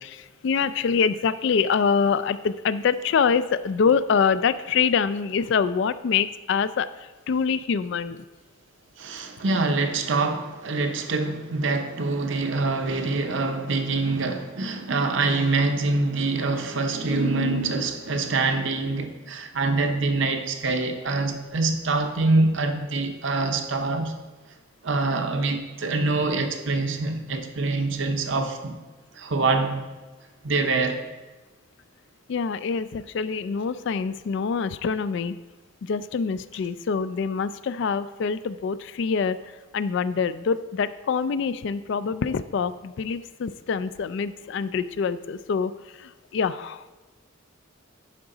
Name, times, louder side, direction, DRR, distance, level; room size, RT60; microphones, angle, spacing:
voice 1, 0.0-8.2 32.3-35.4 35.8-46.8, left 6 dB, 55° left, 0.3 m, -25 dB
voice 2, 9.0-24.1 24.8-28.7 29.2-29.9 30.4-31.0, right 3 dB, 60° right, 0.7 m, -25 dB
11.0 x 4.9 x 3.8 m
head